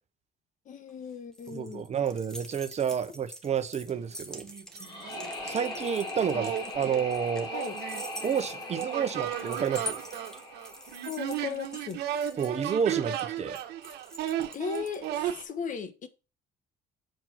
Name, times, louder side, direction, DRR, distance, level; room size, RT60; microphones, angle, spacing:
voice 1, 0.7-1.9 6.3-6.4 7.5-7.8 11.0-12.0 14.5-16.1, left 6 dB, 50° left, 1.2 m, -37 dB
sound 1, 0.9-15.1, left 1 dB, 5° left, 1.4 m, -45 dB
voice 2, 1.5-4.4 5.4-7.5 8.2-10.0 12.4-13.6, right 7 dB, 40° right, 1.0 m, -30 dB
sound 2, 3.9-4.0 4.3-5.6 6.3-15.4, right 11 dB, 80° right, 1.3 m, -35 dB
sound 3, 4.8-11.8, left 2 dB, 25° left, 2.6 m, -40 dB
7.7 x 4.4 x 5.7 m
cardioid pair, 110°, 17 cm